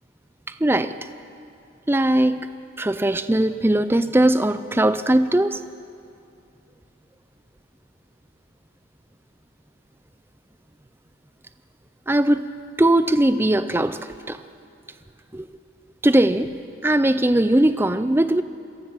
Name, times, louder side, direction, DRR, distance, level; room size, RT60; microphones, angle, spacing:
voice 1, 0.5-1.0 1.9-2.5 2.8-5.6 12.1-12.5 12.8-14.0 14.3-14.4 15.3-15.5 16.0-16.5 16.8-18.4, right 1 dB, 10° right, 12 dB, 0.4 m, -19 dB
27.0 x 18.0 x 6.1 m, 2.5 s
head